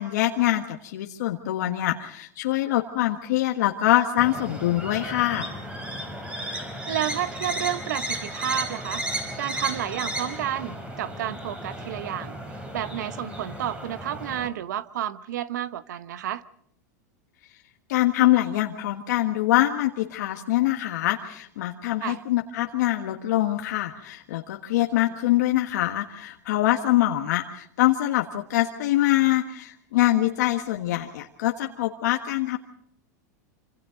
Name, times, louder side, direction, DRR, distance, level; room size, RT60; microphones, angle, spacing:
voice 1, 0.0-5.5 17.9-32.6, left 15 dB, 75° left, 1.5 m, -24 dB
sound 1, 4.2-14.5, right 1 dB, 10° right, 4.1 m, -34 dB
voice 2, 6.9-9.0 9.4-12.4 12.7-16.4 22.0-22.2, right 11 dB, 80° right, 1.0 m, -30 dB
26.5 x 26.5 x 3.9 m
supercardioid pair, 140°, 10 cm